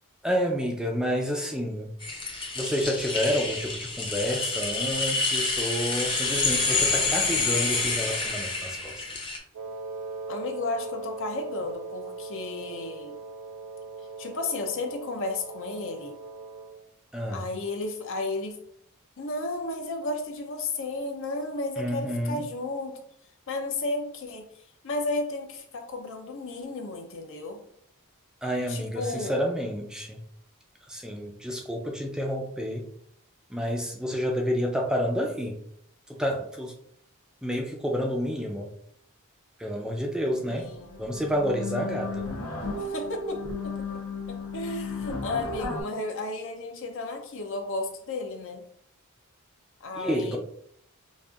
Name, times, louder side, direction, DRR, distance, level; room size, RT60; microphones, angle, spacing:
voice 1, 0.2-1.9 2.6-9.0 17.1-17.4 21.8-22.4 28.4-30.2 30.9-32.8 33.5-35.6 36.1-36.7 37.4-38.7 39.6-40.7 41.0-42.3 50.0-50.4, equal, 5° right, 1 dB, 0.4 m, -29 dB
sound 1, 2.0-9.4, left 3 dB, 25° left, 0.7 m, -28 dB
Wind instrument woodwind instrument, 9.5-16.9, right 3 dB, 80° right, 0.3 m, -39 dB
voice 2, 10.3-13.2 14.2-16.2 17.3-18.6 19.2-23.0 23.5-24.5 24.8-27.6 28.7-29.4 40.5-41.0 42.8-43.9 44.3-48.6 49.8-50.4, left 2 dB, 60° left, 4 dB, 0.6 m, -33 dB
sound 2, 40.4-40.5 40.8-45.8, left 3 dB, 80° left, 0.9 m, -34 dB
5.1 x 2.5 x 2.5 m, 0.67 s
head